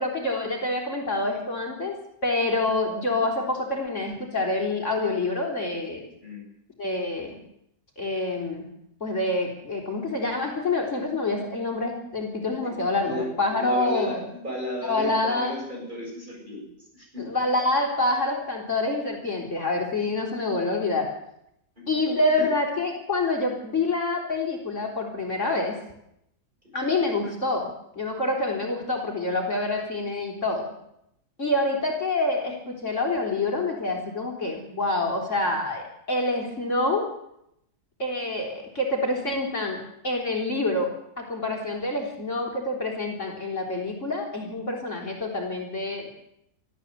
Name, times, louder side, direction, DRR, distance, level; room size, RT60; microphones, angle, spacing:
voice 1, 0.0-2.0 2.2-6.0 6.8-7.4 8.0-8.7 9.0-14.2 14.8-15.5 17.2-21.1 21.9-25.8 26.7-27.7 28.0-30.7 31.4-37.0 38.0-39.8 40.0-40.9 41.2-46.1, left 2 dB, 50° left, 0 dB, 4.3 m, -27 dB
voice 2, 13.6-16.7 16.9-17.3 21.8-22.5, left 1 dB, 30° right, -2 dB, 8.0 m, -34 dB
24.0 x 14.5 x 8.2 m, 0.79 s
omnidirectional pair, 1.7 m